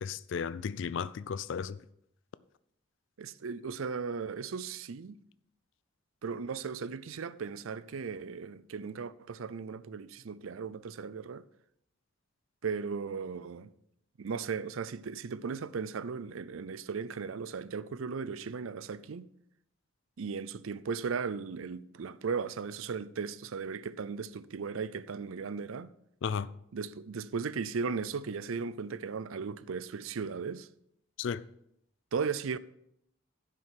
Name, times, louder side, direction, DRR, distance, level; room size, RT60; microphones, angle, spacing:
voice 1, 0.0-1.8 26.2-26.5 31.2-31.4, left 6 dB, 65° left, 0.3 m, -34 dB
voice 2, 3.2-5.2 6.2-11.4 12.6-13.7 14.2-19.3 20.2-25.9 26.7-30.7 32.1-32.6, right 5 dB, 90° right, 0.5 m, -36 dB
10.5 x 6.3 x 5.8 m
head